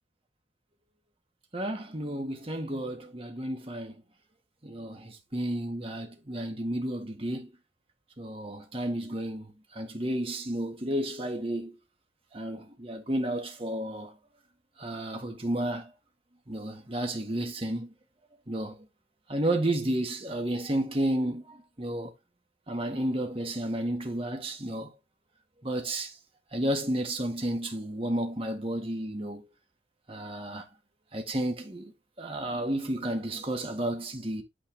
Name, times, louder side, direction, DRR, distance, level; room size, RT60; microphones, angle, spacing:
voice 1, 1.5-3.9 4.6-7.5 8.2-11.8 12.3-14.1 14.8-15.9 16.5-17.9 18.5-18.9 19.3-22.1 22.7-24.9 25.6-26.1 26.5-29.5 30.1-30.6 31.1-31.9 32.2-34.4, right 1 dB, 30° right, 1.7 m, -32 dB
9.0 x 4.3 x 3.4 m
head